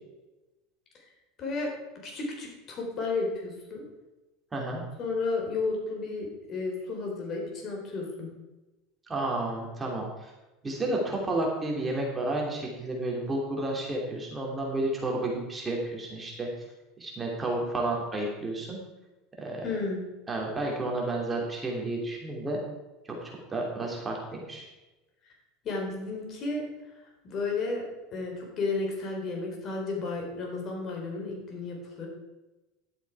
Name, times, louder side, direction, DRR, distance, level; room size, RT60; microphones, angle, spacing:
voice 1, 2.0-3.8 5.0-8.3 19.6-20.0 25.6-26.6 27.2-27.8 28.1-32.1, left 3 dB, 40° left, 0 dB, 4.2 m, -32 dB
voice 2, 4.5-4.8 9.1-10.3 10.6-16.5 17.0-18.8 19.4-19.6 20.3-22.6 23.1-23.2 23.5-24.6, right 2 dB, 15° right, -1 dB, 2.9 m, -31 dB
11.5 x 8.2 x 4.8 m, 1.1 s
supercardioid pair, 120°, 0 cm